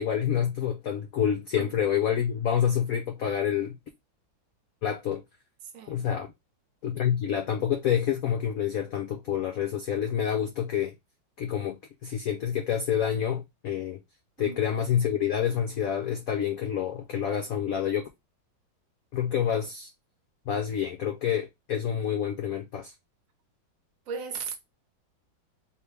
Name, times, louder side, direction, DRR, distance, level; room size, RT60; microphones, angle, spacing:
voice 1, 0.0-3.8 4.8-5.2 5.9-6.3 6.8-10.9 11.4-14.0 14.4-18.1 19.1-19.9 20.5-22.9, left 9 dB, 65° left, 0.8 m, -28 dB
voice 2, 5.7-6.0 14.4-14.6 24.1-24.6, right 5 dB, 55° right, 1.0 m, -36 dB
3.5 x 2.9 x 3.2 m
omnidirectional pair, 2.2 m